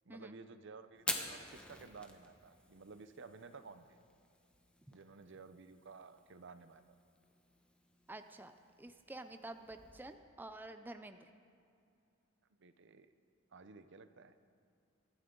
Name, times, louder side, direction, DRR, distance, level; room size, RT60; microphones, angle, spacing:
voice 1, 0.1-4.0 4.9-6.8 12.6-13.1 13.5-14.3, right 4 dB, 65° right, 11 dB, 0.7 m, -54 dB
Fire, 0.9-10.1, left 1 dB, 5° left, 1.1 m, -48 dB
voice 2, 8.1-11.3, right 2 dB, 10° right, 8 dB, 0.4 m, -49 dB
23.5 x 11.0 x 3.8 m, 2.5 s
head